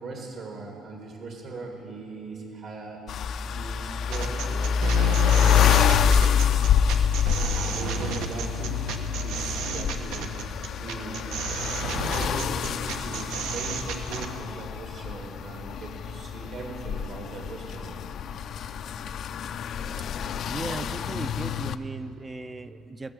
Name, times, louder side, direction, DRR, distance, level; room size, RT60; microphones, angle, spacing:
voice 1, 0.0-3.1 3.5-5.9 6.2-6.5 7.3-8.9 9.2-10.3 10.8-11.3 12.1-18.0, right 3 dB, 60° right, 1 dB, 1.9 m, -39 dB
sound 1, 3.1-21.8, left 8 dB, 50° left, 0.4 m, -26 dB
sound 2, 4.1-14.3, right 6 dB, 80° right, 1.1 m, -32 dB
voice 2, 20.5-23.1, right 3 dB, 15° right, 10 dB, 0.4 m, -37 dB
20.0 x 6.7 x 7.5 m, 2.6 s
cardioid pair, 140°, 0 cm